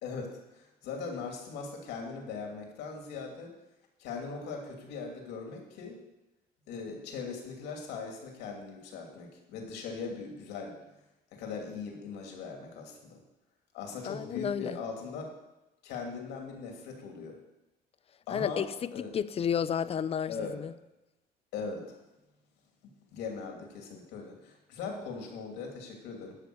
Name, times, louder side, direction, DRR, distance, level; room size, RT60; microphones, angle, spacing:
voice 1, 0.0-3.5 4.0-6.0 6.7-10.8 11.3-13.2 13.7-15.3 15.8-17.4 18.3-18.7 18.9-19.1 20.3-20.6 21.5-22.0 23.1-26.4, left 5 dB, 90° left, 2.8 m, -40 dB
voice 2, 14.0-14.8 18.3-20.7, left 8 dB, 35° left, 0.5 m, -32 dB
12.5 x 5.5 x 7.8 m
cardioid pair, 110°, 17 cm